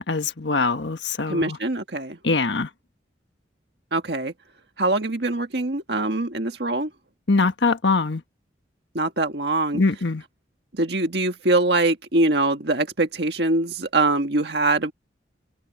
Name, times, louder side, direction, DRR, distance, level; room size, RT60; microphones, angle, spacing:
voice 1, 0.0-1.6 2.2-2.7 7.3-8.2 9.7-10.2, left 3 dB, 75° left, 1.4 m, -22 dB
voice 2, 1.3-2.2 3.9-4.3 4.8-6.9 8.9-9.8 10.7-14.9, right 2 dB, 60° right, 1.7 m, -23 dB
head